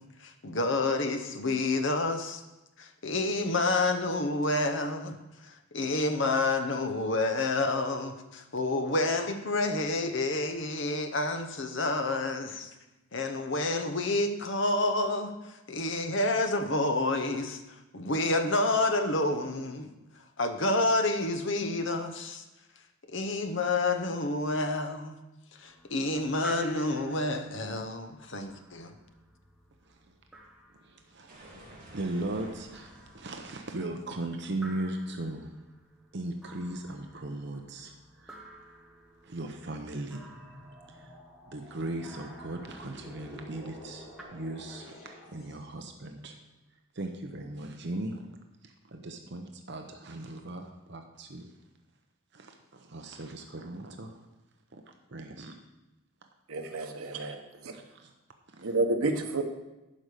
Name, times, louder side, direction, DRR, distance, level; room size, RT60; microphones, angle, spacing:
voice 1, 0.0-2.4 2.8-12.7 13.1-22.5 23.1-25.2 25.5-28.9, left 2 dB, 55° left, 7 dB, 0.9 m, -29 dB
sound 1, 25.6-44.2, right 2 dB, ahead, 1.0 m, -53 dB
voice 2, 29.8-30.2 30.8-31.5 31.9-35.5 36.1-38.4 39.2-40.3 40.9-41.1 41.5-46.3 46.9-48.2 48.6-51.5 52.3-54.2 54.7-55.5 57.2-57.3 57.7-58.1 58.5-58.7, right 2 dB, 50° right, 4 dB, 0.8 m, -38 dB
sound 2, 31.3-36.0, right 1 dB, 35° right, 3.1 m, -53 dB
sound 3, 39.9-45.7, left 1 dB, 80° left, 3.8 m, -50 dB
voice 3, 56.5-57.8 58.6-59.4, right 2 dB, 80° right, 5 dB, 1.1 m, -30 dB
11.5 x 5.2 x 6.4 m, 1.0 s
head